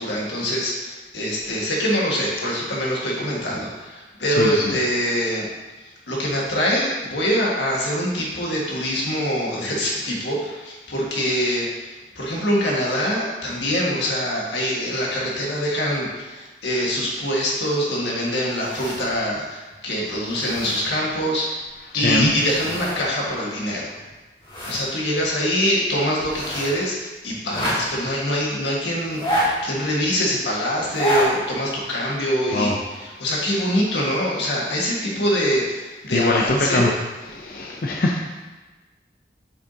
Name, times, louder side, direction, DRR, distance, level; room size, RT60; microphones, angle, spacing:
voice 1, 0.0-5.5 6.1-11.9 12.2-21.6 21.9-24.0 24.7-36.9, equal, 85° left, -3 dB, 1.8 m, -24 dB
voice 2, 4.3-4.7 21.9-22.3 32.5-32.8 36.1-36.9 37.3-38.2, left 2 dB, 55° left, 0 dB, 0.6 m, -22 dB
sound 1, 18.5-19.3 19.7-19.8 20.1-21.1 22.1-23.0 23.3-23.4 23.9-24.8 25.2-25.3 26.2-26.8 27.4-28.1 29.0-29.9 30.8-31.3 31.7-31.8, equal, 25° left, 1.9 m, -28 dB
8.0 x 6.1 x 2.8 m, 1.2 s
head